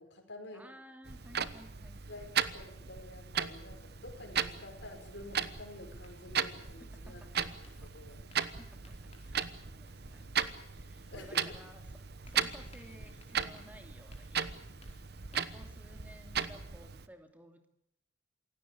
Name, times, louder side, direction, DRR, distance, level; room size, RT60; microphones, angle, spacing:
voice 1, 0.0-0.7 2.0-8.2 11.1-11.6, left 1 dB, 60° left, 3 dB, 5.4 m, -50 dB
voice 2, 0.5-3.0 6.5-7.9 8.2-11.9 12.3-17.7, equal, 10° right, 5 dB, 2.7 m, -57 dB
Clock, 1.0-17.1, right 7 dB, 55° right, 1.1 m, -37 dB
sound 1, 4.3-16.9, left 4 dB, 35° left, 4.7 m, -66 dB
27.5 x 17.0 x 8.5 m, 0.78 s
head